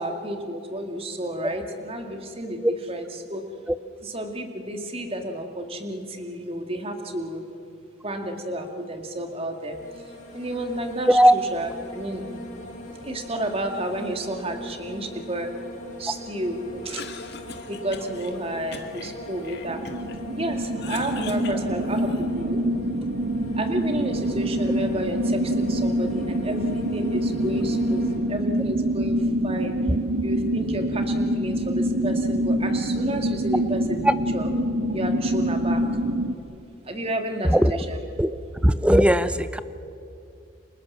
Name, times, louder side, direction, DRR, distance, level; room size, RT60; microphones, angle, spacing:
voice 1, 0.0-2.6 2.9-3.4 4.0-7.4 8.0-9.8 10.3-12.2 13.0-15.5 16.0-17.0 17.7-19.8 20.4-22.6 23.6-28.0 28.3-29.2 29.4-29.7 30.2-34.0 34.3-34.5 34.9-35.8 36.9-38.4, right 1 dB, 30° right, 4 dB, 2.3 m, -31 dB
sound 1, 9.5-28.2, equal, 35° left, 7.1 m, -40 dB
Cough, 16.7-18.3 18.7-20.2 20.5-22.4, left 5 dB, 50° left, 1.9 m, -40 dB
sound 2, 19.7-36.3, right 1 dB, 80° right, 1.5 m, -26 dB
voice 2, 37.4-37.8 38.2-39.6, equal, 5° right, 12 dB, 0.7 m, -18 dB
30.0 x 26.0 x 7.5 m, 2.6 s
head